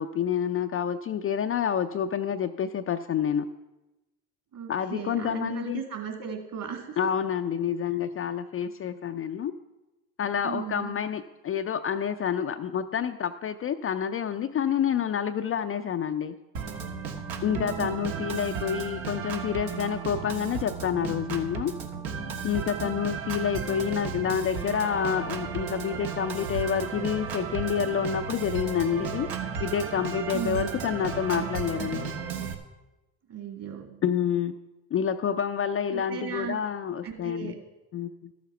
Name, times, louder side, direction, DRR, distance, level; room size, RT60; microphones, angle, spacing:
voice 1, 0.0-3.5 4.7-5.8 7.0-9.5 10.2-16.3 17.4-21.7 22.4-29.3 29.6-32.1 34.0-34.6 34.9-37.6 37.9-38.3, left 8 dB, 30° left, 7 dB, 0.5 m, -28 dB
voice 2, 4.5-7.1 10.4-10.9 17.4-18.7 22.8-23.2 30.3-30.7 33.3-33.9 35.9-36.6 37.0-37.6, right 7 dB, 45° right, 3 dB, 2.7 m, -37 dB
Organ, 16.5-32.5, right 6 dB, 70° right, 1.5 m, -34 dB
13.0 x 7.2 x 5.7 m, 1.0 s
hypercardioid pair, 75°, 45 cm